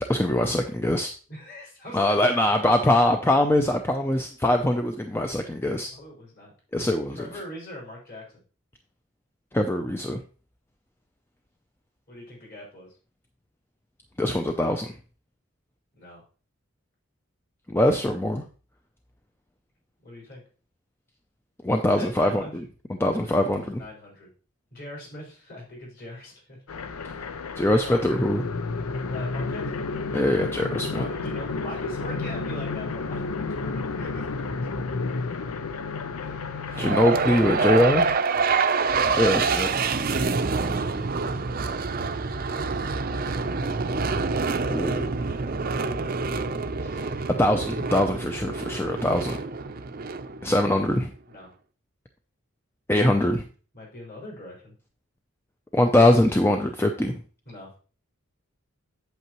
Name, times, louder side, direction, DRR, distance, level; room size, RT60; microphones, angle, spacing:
voice 1, 0.1-1.1 1.9-5.9 6.7-7.3 9.5-10.2 14.2-15.0 17.7-18.4 21.6-22.4 23.0-23.8 27.6-28.4 30.1-31.0 36.8-38.0 39.1-39.7 44.7-45.1 46.8-49.4 50.4-51.1 52.9-53.5 55.7-57.2, left 1 dB, 10° left, 5 dB, 0.4 m, -22 dB
voice 2, 1.3-2.7 5.9-6.5 7.1-8.4 12.1-13.0 16.0-16.2 20.0-20.4 22.0-22.6 23.1-24.3 24.7-26.6 27.6-28.3 29.1-30.1 30.9-35.5 36.2-37.0 38.4-38.8 42.4-44.0 49.2-49.4 51.3-51.5 53.7-54.7 57.5-57.7, left 1 dB, 45° left, -4 dB, 4.6 m, -42 dB
sound 1, 26.7-38.2, left 4 dB, 85° left, 0.6 m, -31 dB
sound 2, 36.7-50.9, right 4 dB, 40° right, 0.5 m, -26 dB
8.2 x 7.6 x 3.0 m, 0.38 s
head